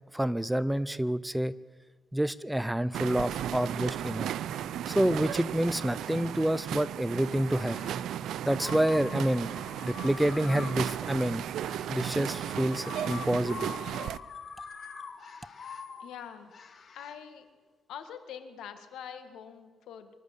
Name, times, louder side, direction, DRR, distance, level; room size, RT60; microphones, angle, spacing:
voice 1, 0.1-1.6 2.1-4.3 4.9-7.8 8.5-9.5 9.8-11.4 11.9-13.7, right 1 dB, 5° right, 16 dB, 0.6 m, -28 dB
sound 1, 2.9-14.2, right 10 dB, 80° right, 0.5 m, -35 dB
sound 2, 7.4-8.0 8.6-17.2, left 6 dB, 50° left, 1.7 m, -44 dB
voice 2, 16.0-16.5 16.9-17.5 17.9-20.1, left 8 dB, 90° left, 8 dB, 1.9 m, -44 dB
25.0 x 12.5 x 8.3 m, 1.4 s
cardioid pair, 115°, 0 cm